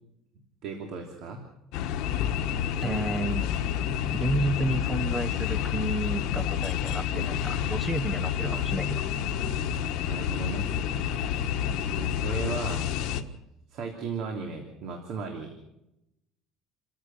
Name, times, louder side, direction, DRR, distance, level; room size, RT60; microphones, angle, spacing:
voice 1, 0.6-1.4 8.4-8.7 10.1-10.6 11.9-12.9 13.7-15.6, right 5 dB, 55° right, 3 dB, 3.0 m, -36 dB
sound 1, 1.7-13.2, left 9 dB, 70° left, 1.5 m, -29 dB
voice 2, 2.8-3.5 4.1-8.9 11.7-11.8, right 2 dB, 10° right, 12 dB, 1.1 m, -31 dB
29.0 x 15.0 x 6.1 m, 0.87 s
cardioid pair, 160°, 0 cm